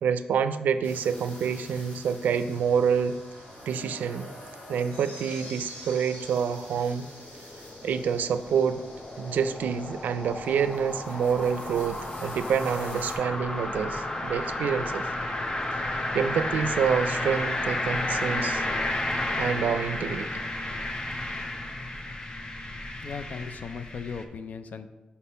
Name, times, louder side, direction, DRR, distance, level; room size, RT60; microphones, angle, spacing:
voice 1, 0.0-3.2 3.7-4.3 4.7-7.1 7.8-8.8 9.2-15.1 15.9-18.7 19.4-20.3, right 7 dB, 85° right, 11 dB, 0.4 m, -27 dB
sound 1, 0.8-13.2, left 1 dB, 85° left, 2.2 m, -46 dB
sound 2, 6.6-24.2, left 1 dB, 30° left, 0.7 m, -32 dB
voice 2, 23.0-24.9, left 5 dB, 65° left, 10 dB, 0.5 m, -37 dB
5.5 x 4.2 x 5.5 m, 1.2 s
cardioid pair, 80°, 3 cm